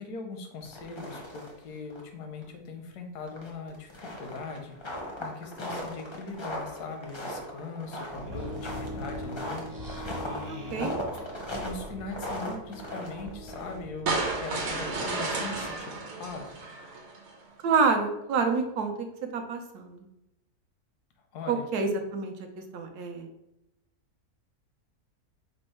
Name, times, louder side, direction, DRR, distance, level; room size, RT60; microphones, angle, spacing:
voice 1, 0.0-4.8 5.2-9.9 10.2-10.9 11.6-15.9 16.2-16.6 21.3-21.7, left 4 dB, 80° left, 4 dB, 1.3 m, -40 dB
sound 1, 0.6-1.6 1.9-2.0 2.4-2.5 3.3-14.0, equal, 35° left, 0.4 m, -38 dB
sound 2, 8.1-16.4, equal, 25° right, 0.4 m, -42 dB
voice 2, 10.5-10.9 17.6-20.1 21.5-23.3, right 4 dB, 75° right, 5 dB, 1.1 m, -28 dB
sound 3, 14.1-17.3, right 3 dB, 55° right, 0.9 m, -32 dB
5.3 x 2.0 x 4.3 m, 0.89 s
omnidirectional pair, 1.7 m